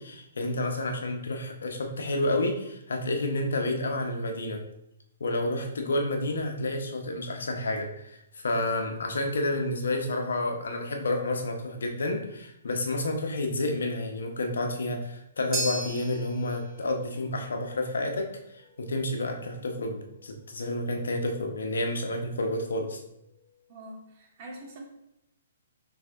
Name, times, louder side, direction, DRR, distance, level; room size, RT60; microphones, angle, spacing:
voice 1, 0.0-4.6 5.2-18.3 18.5-23.0, left 1 dB, 75° left, 3 dB, 0.9 m, -30 dB
sound 1, 15.5-23.9, right 2 dB, 25° right, 1.0 m, -41 dB
voice 2, 23.7-24.8, right 1 dB, 40° right, -1 dB, 1.4 m, -44 dB
6.0 x 3.4 x 2.5 m, 0.81 s
hypercardioid pair, 130°, 0 cm